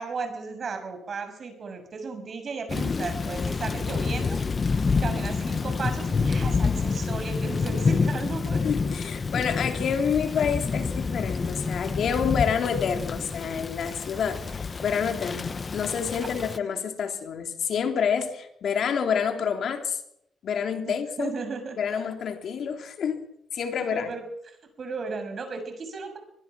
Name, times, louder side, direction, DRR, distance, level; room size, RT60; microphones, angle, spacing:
voice 1, 0.0-4.4 5.0-8.6 20.9-22.0 23.8-24.2 24.8-26.2, right 4 dB, 45° right, 6 dB, 6.7 m, -35 dB
Thunder / Rain, 2.7-16.6, left 4 dB, 35° left, 1.1 m, -28 dB
voice 2, 8.6-20.0 20.4-21.3 21.8-23.2 23.5-24.1, left 7 dB, 60° left, 5 dB, 3.3 m, -28 dB
24.5 x 20.5 x 6.2 m, 0.78 s
cardioid pair, 90°, 0 cm